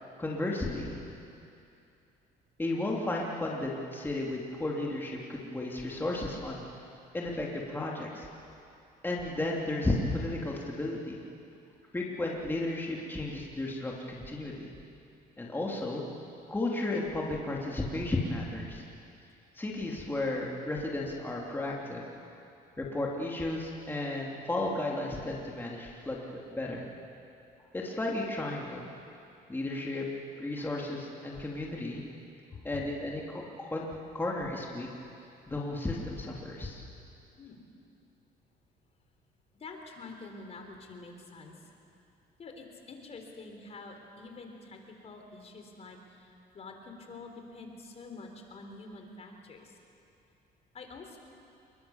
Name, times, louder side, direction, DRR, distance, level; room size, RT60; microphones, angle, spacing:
voice 1, 0.2-1.0 2.6-6.7 7.1-8.3 9.0-11.2 11.9-14.7 15.4-16.0 16.5-18.8 19.6-22.0 22.8-26.9 27.7-28.9 29.5-30.0 30.4-32.0 32.6-34.9 35.5-36.8, left 2 dB, 10° left, -3 dB, 3.0 m, -33 dB
voice 2, 32.5-32.8 37.4-37.6 39.5-41.7 42.4-49.8 50.7-51.2, left 3 dB, 40° left, 3 dB, 3.8 m, -47 dB
27.0 x 22.5 x 7.2 m, 2.6 s
cardioid pair, 110°, 17 cm